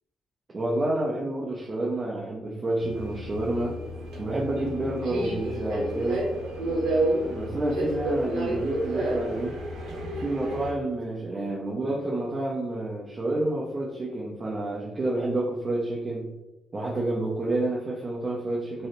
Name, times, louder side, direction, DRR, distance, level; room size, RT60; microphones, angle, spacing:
voice 1, 0.5-3.7 4.2-6.2 7.3-9.5 10.2-16.3 16.7-18.9, right 1 dB, 35° right, -3 dB, 0.5 m, -29 dB
Subway metro underground, 2.8-10.7, right 1 dB, 70° right, 0.8 m, -30 dB
2.7 x 2.0 x 3.8 m, 1.0 s
cardioid pair, 90°, 0 cm